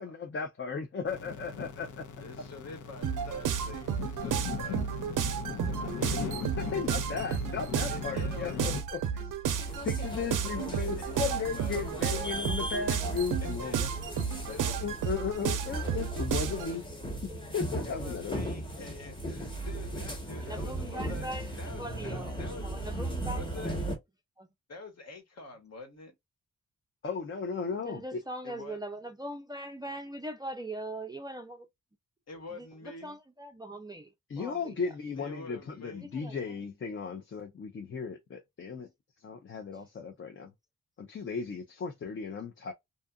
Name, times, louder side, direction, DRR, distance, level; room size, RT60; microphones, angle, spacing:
voice 1, 0.0-2.1 6.6-9.3 9.8-13.9 14.4-16.9 17.2-18.4 27.0-28.2 34.3-38.9 39.2-40.5 41.0-42.7, left 5 dB, 40° left, 0.6 m, -36 dB
sound 1, 1.1-8.8, left 6 dB, 80° left, 0.8 m, -39 dB
voice 2, 2.2-6.5 7.9-8.6 10.5-12.3 13.4-13.8 14.5-14.8 17.8-22.7 23.3-23.8 24.7-26.1 28.4-28.8 32.3-33.2 35.1-36.1, left 3 dB, 55° left, 1.3 m, -47 dB
sound 2, 3.0-16.7, right 8 dB, 90° right, 0.5 m, -32 dB
sound 3, 9.4-24.0, right 1 dB, 15° left, 1.0 m, -37 dB
voice 3, 20.3-22.3 22.6-23.5 24.4-24.5 27.9-31.7 32.5-34.1 34.4-34.7 36.1-36.4, right 1 dB, 15° right, 0.4 m, -41 dB
2.7 x 2.4 x 2.2 m
wide cardioid pair, 125°, 31 cm